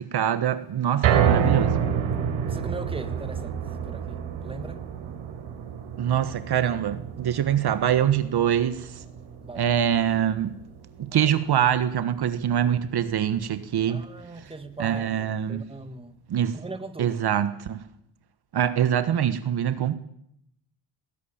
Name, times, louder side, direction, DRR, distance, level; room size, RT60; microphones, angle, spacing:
voice 1, 0.0-1.8 6.0-8.9 9.6-10.5 11.0-14.0 14.8-15.7 16.3-16.6 17.0-17.8 18.5-19.9, right 9 dB, 50° right, 1.5 m, -24 dB
sound 1, 1.0-13.3 13.7-13.8 14.2-14.3, right 8 dB, 70° right, 4.2 m, -29 dB
voice 2, 2.5-4.8 9.4-9.8 11.1-11.3 13.9-16.2 16.5-17.2, right 3 dB, 10° right, 1.9 m, -39 dB
20.5 x 17.0 x 8.8 m
cardioid pair, 110°, 49 cm